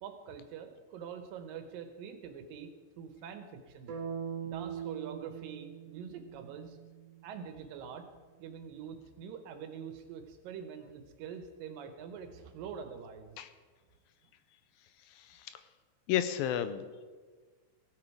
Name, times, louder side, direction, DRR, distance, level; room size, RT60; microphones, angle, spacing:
voice 1, 0.0-2.7 3.0-4.0 4.4-6.8 7.2-8.1 8.4-13.4, right 7 dB, 75° right, 7 dB, 2.4 m, -45 dB
sound 1, 3.9-7.9, right 7 dB, 55° right, 2.0 m, -42 dB
voice 2, 15.1-15.5 16.1-17.0, left 10 dB, 80° left, 10 dB, 2.3 m, -33 dB
17.0 x 8.4 x 4.7 m, 1.4 s
omnidirectional pair, 4.3 m